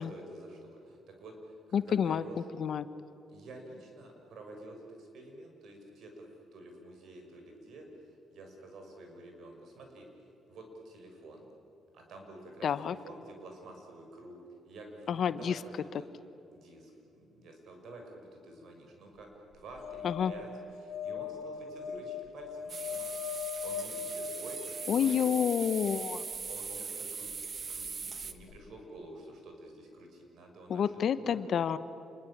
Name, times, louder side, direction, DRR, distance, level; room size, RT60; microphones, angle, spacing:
voice 1, 0.0-2.4 3.3-10.1 10.5-11.5 11.9-14.4 14.6-16.1 16.5-20.5 20.8-23.1 23.6-25.3 25.9-26.0 26.5-31.4, right 2 dB, 70° right, 3 dB, 6.5 m, -49 dB
voice 2, 1.7-2.2 2.6-2.8 12.6-12.9 15.1-15.6 20.0-20.3 24.9-26.2 30.7-31.8, left 8 dB, 60° left, 13 dB, 1.1 m, -29 dB
sound 1, 19.8-26.0 28.2-28.3 28.5-28.6, left 7 dB, 80° left, 2.2 m, -40 dB
sound 2, 22.7-28.3, right 5 dB, 40° right, 1.6 m, -40 dB
28.0 x 21.5 x 8.9 m, 2.8 s
cardioid pair, 90°, 0 cm